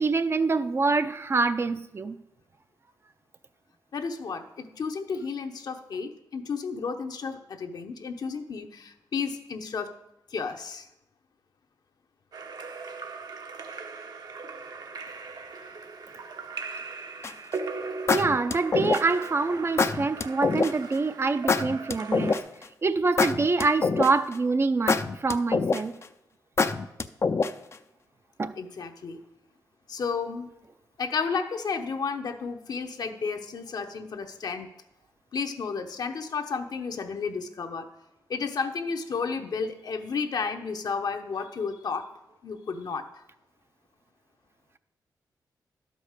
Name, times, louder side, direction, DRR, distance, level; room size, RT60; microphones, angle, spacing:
voice 1, 0.0-2.2 18.1-22.4 22.8-25.9 28.4-28.5, right 3 dB, 35° right, 0.5 m, -25 dB
voice 2, 3.9-10.0 10.3-10.9 28.6-29.2 29.9-30.5 31.0-34.7 35.3-37.9 38.3-42.1 42.4-43.1, left 5 dB, 60° left, 0.9 m, -32 dB
Splash splatter / Drip / Trickle dribble, 12.3-22.4, right 4 dB, 60° right, 1.0 m, -39 dB
sound 1, 17.2-17.5 18.1-19.2 19.8-20.7 21.5-22.6 23.2-24.3 24.9-26.0 26.6-27.7, left 4 dB, 35° left, 0.5 m, -24 dB
11.5 x 5.3 x 6.5 m
cardioid pair, 90°, 7 cm